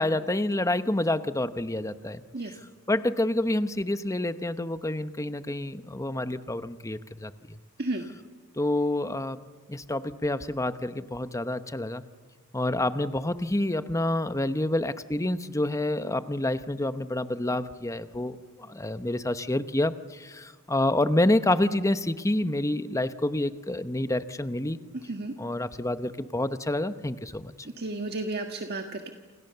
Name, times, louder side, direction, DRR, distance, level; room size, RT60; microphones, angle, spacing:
voice 1, 0.0-2.5 2.9-7.6 8.6-9.4 9.7-12.0 12.5-24.8 25.4-27.5, left 1 dB, 15° left, 11 dB, 1.0 m, -28 dB
voice 2, 27.6-29.1, right 2 dB, 50° right, 4 dB, 1.7 m, -32 dB
29.0 x 28.5 x 6.9 m, 1.5 s
head